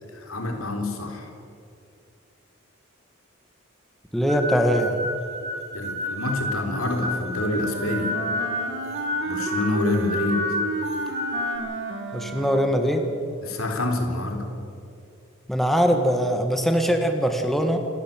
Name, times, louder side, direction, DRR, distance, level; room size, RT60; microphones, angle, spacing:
voice 1, 0.1-1.3 5.7-8.2 9.3-10.5 13.4-14.5, left 2 dB, 85° left, 4 dB, 3.7 m, -27 dB
voice 2, 4.1-5.0 12.1-13.2 15.5-17.8, equal, ahead, 5 dB, 1.5 m, -22 dB
sound 1, 4.3-11.6, left 2 dB, 35° right, 4.1 m, -30 dB
Wind instrument woodwind instrument, 7.6-13.0, right 3 dB, 60° right, 2.1 m, -32 dB
27.5 x 12.5 x 9.0 m, 2.6 s
head